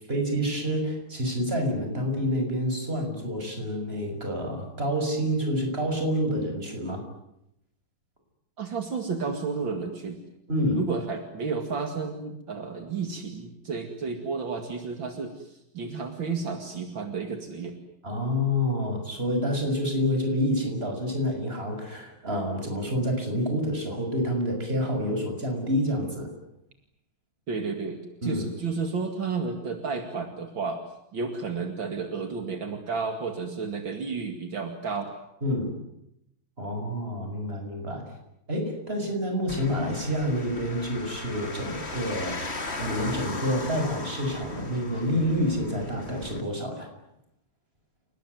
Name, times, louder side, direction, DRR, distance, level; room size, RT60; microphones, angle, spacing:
voice 1, 0.1-7.0 10.5-10.8 18.0-26.3 28.2-28.5 35.4-35.7 36.6-38.1 38.5-42.4 42.8-46.9, equal, 30° right, 4 dB, 6.5 m, -28 dB
voice 2, 8.6-10.2 10.7-17.7 27.5-30.8 31.1-35.1, right 4 dB, 70° right, 5 dB, 3.1 m, -32 dB
sound 1, 39.5-46.4, left 3 dB, 30° left, 2.8 m, -37 dB
30.0 x 19.0 x 9.5 m, 0.82 s
omnidirectional pair, 2.2 m